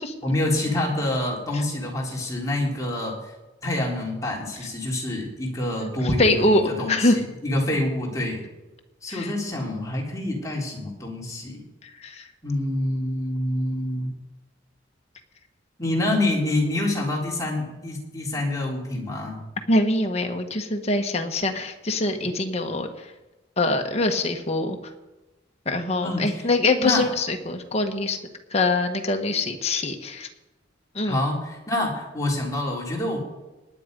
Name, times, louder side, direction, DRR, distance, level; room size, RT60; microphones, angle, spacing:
voice 1, 0.2-3.3 3.6-7.1 7.4-8.4 9.0-11.6 12.4-14.1 15.8-19.4 26.0-26.5 26.8-27.1 31.0-33.2, left 1 dB, 15° left, -2 dB, 3.5 m, -27 dB
voice 2, 5.8-7.2 9.1-9.3 12.0-12.3 19.7-23.1 23.6-24.8 25.6-28.2 28.5-30.3 30.9-31.2, left 2 dB, 30° left, 4 dB, 1.5 m, -23 dB
18.5 x 10.0 x 5.4 m, 1.1 s
head